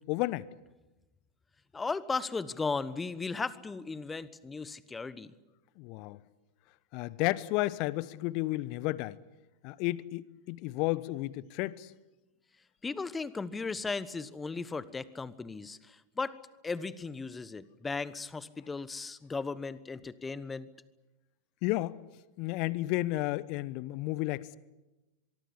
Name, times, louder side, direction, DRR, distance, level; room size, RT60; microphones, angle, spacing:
voice 1, 0.1-0.5 5.8-6.2 6.9-9.2 9.6-11.9 21.6-22.0 22.4-24.6, left 18 dB, 45° left, 0.9 m, -32 dB
voice 2, 1.7-5.3 12.8-16.4 16.6-20.7, left 4 dB, 15° left, 1.2 m, -36 dB
24.0 x 23.0 x 8.4 m
figure-of-eight pair, 90°, 0 cm